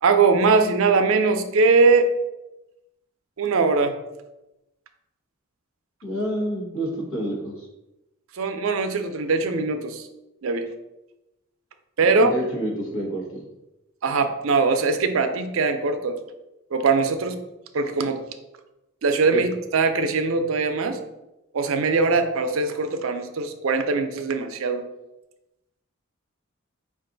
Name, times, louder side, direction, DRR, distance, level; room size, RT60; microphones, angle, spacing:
voice 1, 0.0-2.1 3.4-4.0 8.3-10.1 10.4-10.7 12.0-12.3 14.0-16.2 16.7-17.4 17.7-18.2 19.0-21.0 21.5-24.8, right 4 dB, 75° right, 7 dB, 0.5 m, -21 dB
voice 2, 6.0-7.7 12.0-13.5 19.3-19.4, right 1 dB, 75° left, -1 dB, 1.3 m, -29 dB
5.2 x 2.5 x 3.8 m, 0.95 s
head